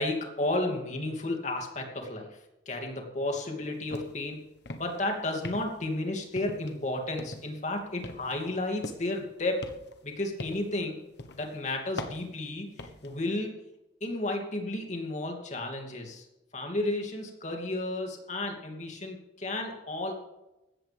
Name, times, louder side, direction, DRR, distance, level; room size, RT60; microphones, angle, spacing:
voice 1, 0.0-2.3 2.7-4.5 4.7-9.7 10.0-11.0 11.3-13.5 14.0-16.3 16.5-20.1, left 2 dB, 40° left, 2 dB, 2.7 m, -32 dB
sound 1, 3.9-4.2 4.6-5.0 5.4-5.9 6.4-6.8 7.2-7.6 8.0-9.2 9.6-10.8 11.2-11.5 12.0-13.1, left 2 dB, 65° left, 1.2 m, -41 dB
16.5 x 13.5 x 3.5 m, 0.94 s
head